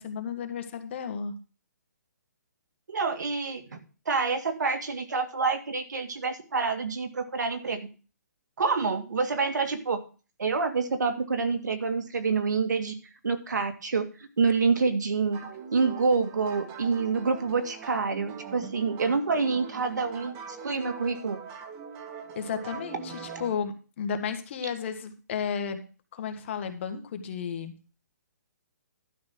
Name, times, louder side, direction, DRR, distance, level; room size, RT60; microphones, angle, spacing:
voice 1, 0.0-1.4 22.3-25.8 26.1-27.7, left 6 dB, 45° left, 8 dB, 1.6 m, -33 dB
voice 2, 2.9-3.8 4.1-7.9 8.6-10.0 10.4-12.9 13.2-14.1 14.4-15.4 15.7-21.4, right 4 dB, 80° right, 7 dB, 2.1 m, -27 dB
sound 1, 15.3-23.5, right 6 dB, 25° right, 1.5 m, -42 dB
12.0 x 5.4 x 6.0 m, 0.35 s
hypercardioid pair, 155°, 9 cm